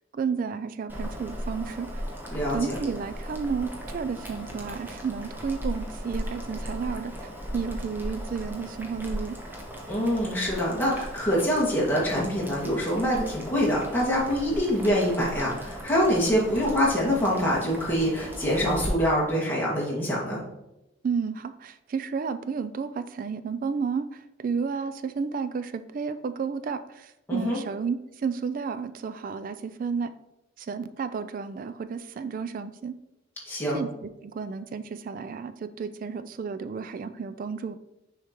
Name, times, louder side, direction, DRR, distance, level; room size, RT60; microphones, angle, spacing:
voice 1, 0.1-1.9 2.5-7.1 7.5-9.4 21.0-30.1 30.6-32.9 33.7-37.7, right 5 dB, 45° right, 12 dB, 0.3 m, -32 dB
Boiling, 0.9-18.9, equal, 10° right, 0.9 m, -37 dB
voice 2, 2.3-2.8 9.9-20.4 27.3-27.6 33.5-33.8, equal, 10° left, -6 dB, 1.9 m, -25 dB
6.4 x 4.9 x 3.0 m, 0.92 s
head